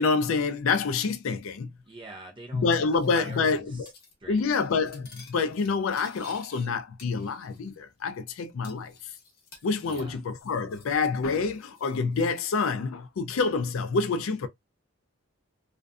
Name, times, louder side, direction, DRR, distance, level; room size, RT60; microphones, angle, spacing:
voice 1, 0.0-1.7 2.5-3.9 4.3-9.1 9.6-14.5, left 4 dB, 70° left, 0.4 m, -27 dB
voice 2, 1.9-3.6 4.2-4.5 9.8-10.2, right 2 dB, 25° right, 0.8 m, -43 dB
Cutlery silverware, 2.7-3.6 3.9-4.1 4.4-6.7 7.0-7.7 8.0-8.1 8.6-11.0 11.2-12.4, left 4 dB, 45° left, 0.9 m, -53 dB
2.5 x 2.3 x 2.2 m
head